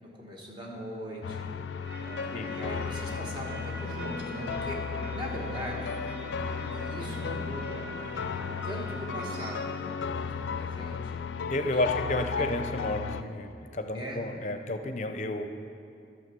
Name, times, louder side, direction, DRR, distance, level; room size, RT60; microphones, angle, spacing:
voice 1, 0.0-1.5 2.0-6.0 6.7-7.9 8.6-11.2 11.7-12.6 13.9-14.2, equal, 25° right, -2 dB, 1.4 m, -40 dB
sound 1, 1.2-13.2, left 6 dB, 90° left, 0.3 m, -35 dB
sound 2, 1.8-9.6, right 1 dB, 85° right, 1.1 m, -42 dB
voice 2, 11.5-15.5, left 1 dB, 40° left, 7 dB, 0.6 m, -31 dB
11.0 x 6.4 x 6.1 m, 2.5 s
head